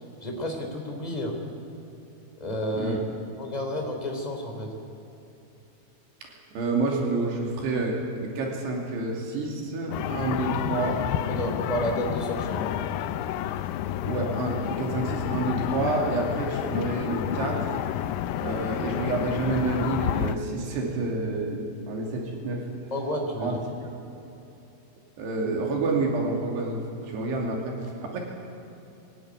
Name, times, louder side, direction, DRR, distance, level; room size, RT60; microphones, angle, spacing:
voice 1, 0.2-1.4 2.4-2.9 3.4-4.7 11.3-12.8 22.9-23.6, equal, 10° left, 2 dB, 2.5 m, -30 dB
voice 2, 6.2-11.0 14.1-17.8 18.4-22.9 23.4-23.6 23.9-24.0 25.2-28.2, right 3 dB, 85° right, -1 dB, 4.8 m, -29 dB
sound 1, 9.9-20.4, left 11 dB, 90° left, 1.9 m, -30 dB
21.0 x 16.5 x 9.6 m, 3.0 s
omnidirectional pair, 4.7 m